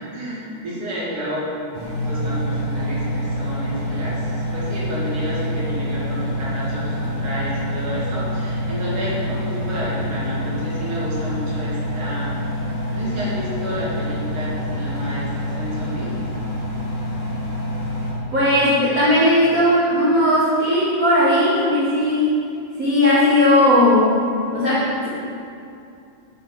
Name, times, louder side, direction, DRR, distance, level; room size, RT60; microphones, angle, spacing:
voice 1, 0.1-1.8 2.0-12.3 12.9-16.1, equal, 50° right, -8 dB, 2.6 m, -30 dB
Engine, 1.7-18.1, equal, 45° left, 2.2 m, -26 dB
voice 2, 18.3-22.4 22.8-24.1 24.5-25.1, left 1 dB, 75° right, -9 dB, 0.7 m, -17 dB
7.5 x 6.5 x 3.9 m, 2.6 s
omnidirectional pair, 3.5 m